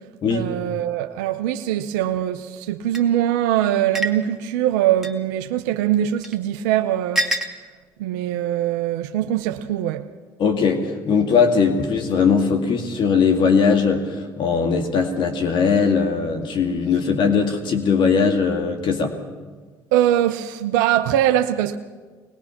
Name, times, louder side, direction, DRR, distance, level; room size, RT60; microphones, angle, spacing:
voice 1, 0.3-7.3 8.0-10.1 19.9-21.8, right 12 dB, 90° right, 0.7 m, -22 dB
sound 1, 2.9-3.0 3.9-4.2 5.0-5.2 6.2-6.4 7.2-7.5, right 1 dB, 5° right, 2.2 m, -24 dB
voice 2, 10.4-19.1, left 5 dB, 60° left, 2.2 m, -19 dB
22.0 x 20.5 x 5.9 m
supercardioid pair, 65°, 9 cm